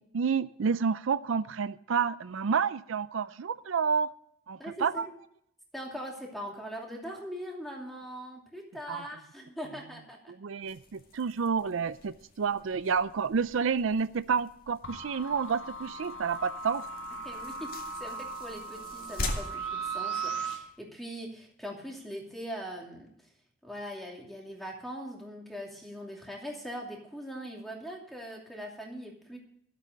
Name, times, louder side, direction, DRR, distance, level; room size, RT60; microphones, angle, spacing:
voice 1, 0.1-4.1 4.5-5.1 8.9-9.0 10.4-16.8, right 6 dB, 80° right, 15 dB, 0.4 m, -29 dB
voice 2, 4.6-5.1 5.7-10.3 17.2-17.7 18.0-23.1 23.6-29.4, equal, ahead, -1 dB, 2.7 m, -41 dB
sound 1, 10.6-20.7, left 2 dB, 45° left, 2.1 m, -43 dB
sound 2, 14.8-20.6, right 4 dB, 65° left, 1.8 m, -38 dB
13.5 x 8.4 x 6.5 m, 0.71 s
head